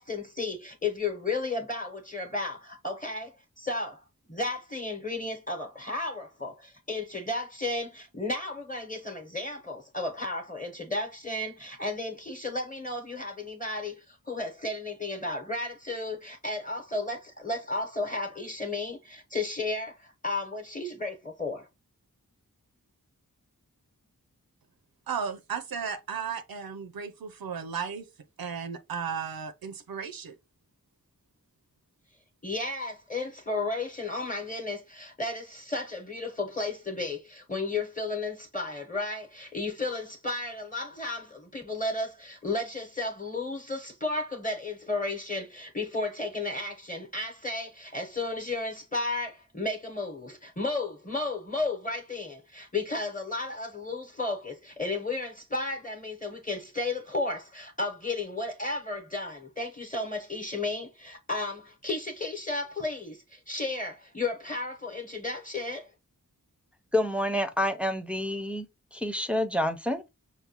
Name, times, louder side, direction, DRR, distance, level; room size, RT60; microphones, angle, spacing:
voice 1, 0.0-4.0 4.3-21.7 32.4-65.9, left 2 dB, 25° left, 0.9 m, -33 dB
voice 2, 25.1-28.1 28.4-30.4, right 6 dB, 85° right, 0.5 m, -35 dB
voice 3, 66.9-68.7 68.9-70.1, left 1 dB, 5° right, 0.5 m, -28 dB
5.6 x 2.2 x 2.8 m
wide cardioid pair, 50°, 35 cm